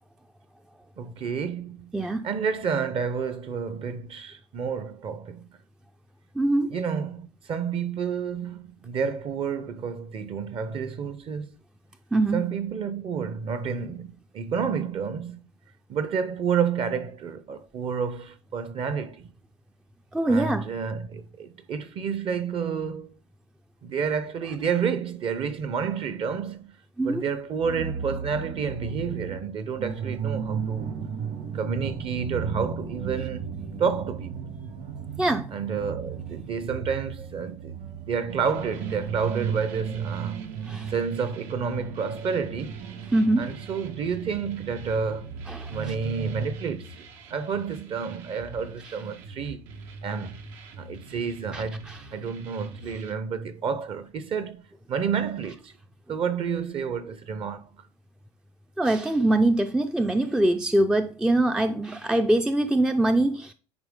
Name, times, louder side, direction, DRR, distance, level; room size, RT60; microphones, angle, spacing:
voice 1, 1.0-1.9 2.2-5.5 6.7-11.5 12.3-15.4 15.9-19.3 20.2-23.2 23.8-26.7 27.0-30.9 31.5-33.5 33.8-34.3 35.5-37.8 38.1-40.4 40.9-42.8 43.4-45.3 45.7-49.7 50.0-50.4 50.8-54.6 54.9-55.7 56.1-57.7, right 6 dB, 40° right, 0.7 m, -30 dB
voice 2, 1.9-2.3 6.4-6.7 12.1-12.5 20.1-20.7 27.0-27.2 35.2-35.5 40.7-40.9 43.1-43.5 45.5-45.9 51.5-52.0 58.8-63.5, right 1 dB, 5° right, 0.4 m, -23 dB
sound 1, 27.6-46.5, right 7 dB, 60° right, 2.0 m, -35 dB
sound 2, 38.3-53.1, right 3 dB, 85° right, 1.4 m, -46 dB
9.6 x 4.4 x 3.7 m
cardioid pair, 135°, 15 cm